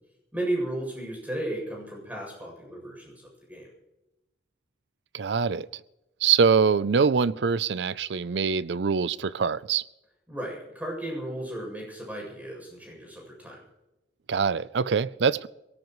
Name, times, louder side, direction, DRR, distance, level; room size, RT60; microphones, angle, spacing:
voice 1, 0.3-3.7 10.3-13.6, right 1 dB, 10° right, 7.5 m, -34 dB
voice 2, 5.1-5.7 6.2-9.8 14.3-15.5, right 5 dB, 75° right, 0.5 m, -24 dB
23.0 x 18.0 x 3.2 m
head